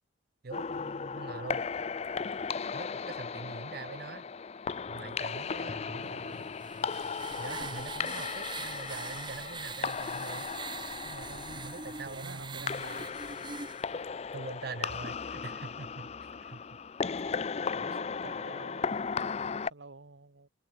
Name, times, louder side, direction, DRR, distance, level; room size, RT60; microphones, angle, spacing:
voice 1, 0.4-1.7 2.7-4.2 4.9-6.1 7.4-10.5 11.0-12.8 14.3-16.1 16.4-16.6, right 3 dB, 55° right, 0.7 m, -43 dB
sound 1, 0.5-19.7, left 5 dB, 35° left, 0.4 m, -36 dB
voice 2, 5.6-6.5 12.0-13.1 17.7-20.5, right 3 dB, 70° right, 1.2 m, -49 dB
sound 2, 6.3-13.8, right 5 dB, 25° right, 1.0 m, -43 dB
head